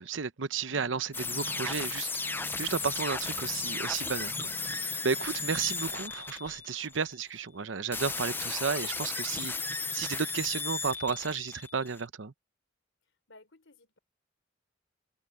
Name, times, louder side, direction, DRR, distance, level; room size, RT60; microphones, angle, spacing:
voice 1, 0.0-12.3, right 5 dB, 85° right, 0.8 m, -33 dB
sound 1, 1.1-6.0, equal, 40° left, 5.8 m, -52 dB
sound 2, 1.1-7.2 7.9-12.0, left 4 dB, 10° left, 0.7 m, -35 dB
sound 3, 1.9-7.2, right 3 dB, 35° right, 7.5 m, -55 dB
voice 2, 13.0-14.0, left 2 dB, 85° left, 4.0 m, -58 dB
head